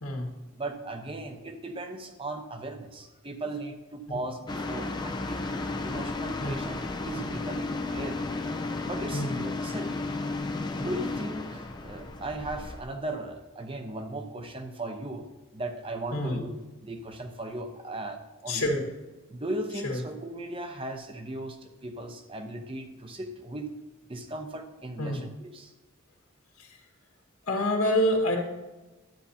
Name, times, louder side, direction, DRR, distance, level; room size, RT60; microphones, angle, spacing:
voice 1, 0.6-5.5 5.8-8.2 8.8-10.0 10.7-15.2 15.5-16.6 16.8-18.7 19.3-23.7 24.1-25.3 25.5-25.7, right 2 dB, 25° right, 5 dB, 0.9 m, -37 dB
sound 1, 4.5-12.8, left 2 dB, 20° left, 0.5 m, -33 dB
voice 2, 16.1-16.4 18.5-18.9 19.8-20.0 25.0-25.2 26.6-26.8 27.5-28.4, left 1 dB, 80° left, -1 dB, 1.8 m, -27 dB
12.0 x 9.5 x 2.8 m, 1.1 s
head